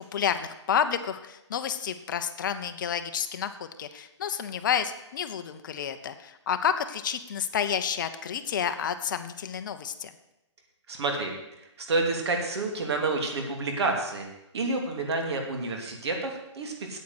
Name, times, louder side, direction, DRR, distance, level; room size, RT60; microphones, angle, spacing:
voice 1, 0.0-10.1, left 8 dB, 40° left, 10 dB, 0.8 m, -30 dB
voice 2, 10.9-14.3 14.5-17.0, right 3 dB, 60° right, 3 dB, 3.0 m, -29 dB
9.4 x 8.7 x 7.9 m, 0.90 s
hypercardioid pair, 165°, 15 cm